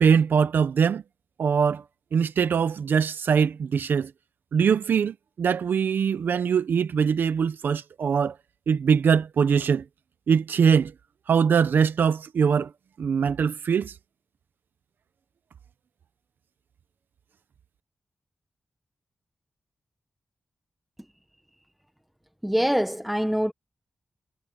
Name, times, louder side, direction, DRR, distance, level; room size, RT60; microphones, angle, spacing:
voice 1, 0.0-1.0 1.4-1.8 2.1-4.1 4.5-8.4 8.7-9.8 10.3-10.9 11.3-12.7 13.0-14.0, right 6 dB, 80° right, 0.6 m, -22 dB
voice 2, 22.4-23.5, equal, 5° right, 0.9 m, -24 dB
wide cardioid pair, 120°, 3 cm